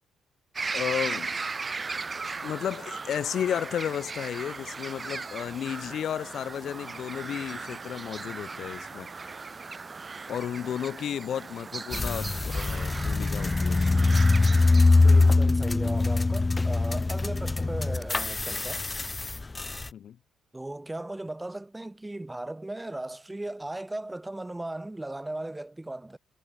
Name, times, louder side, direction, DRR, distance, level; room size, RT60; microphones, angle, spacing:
sound 1, 0.5-15.3, right 4 dB, 30° right, 3.0 m, -37 dB
voice 1, 0.7-1.3 2.4-9.1 10.3-14.0 19.9-20.2, left 9 dB, 65° left, 1.1 m, -33 dB
sound 2, 11.9-19.9, left 3 dB, 20° left, 1.9 m, -23 dB
voice 2, 15.0-18.8 20.5-26.2, right 2 dB, 10° right, 4.5 m, -37 dB
cardioid pair, 90°, 0 cm